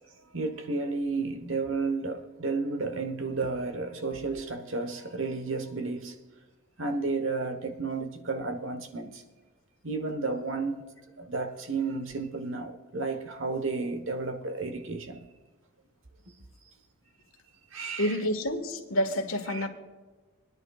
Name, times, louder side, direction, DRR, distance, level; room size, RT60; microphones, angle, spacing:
voice 1, 0.3-6.1 6.8-9.2 9.8-10.8 11.2-15.3 17.7-18.2 19.5-19.7, right 3 dB, 75° right, 1.2 m, -32 dB
voice 2, 18.0-19.7, equal, 85° left, 1.5 m, -28 dB
21.5 x 10.5 x 2.4 m
head